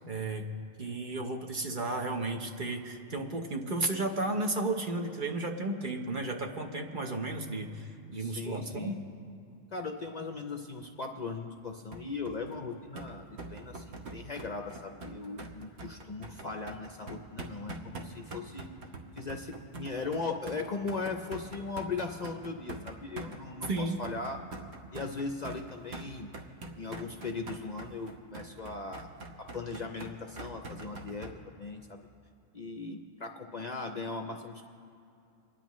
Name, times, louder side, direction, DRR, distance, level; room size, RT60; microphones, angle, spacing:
voice 1, 0.1-0.5 0.8-9.0 23.7-24.0, right 2 dB, 45° right, 3 dB, 1.0 m, -33 dB
voice 2, 8.2-9.0 9.7-18.7 19.1-24.4 24.9-26.3 26.8-29.1 29.4-31.3 31.6-32.0 32.5-34.6, left 4 dB, 45° left, 4 dB, 0.6 m, -38 dB
sound 1, 11.9-31.3, right 2 dB, 65° right, 1.3 m, -44 dB
29.5 x 10.5 x 3.1 m, 2.6 s
omnidirectional pair, 1.2 m